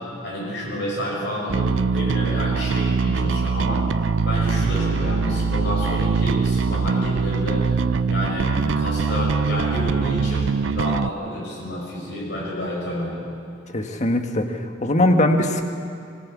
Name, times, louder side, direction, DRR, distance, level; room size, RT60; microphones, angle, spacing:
voice 1, 0.0-7.6 8.1-13.2, equal, 65° left, -4 dB, 6.9 m, -29 dB
Bass guitar, 1.5-11.1, right 4 dB, 75° right, 0.5 m, -22 dB
voice 2, 13.7-15.6, left 1 dB, 40° left, 5 dB, 1.7 m, -21 dB
24.5 x 17.0 x 8.4 m, 2.4 s
head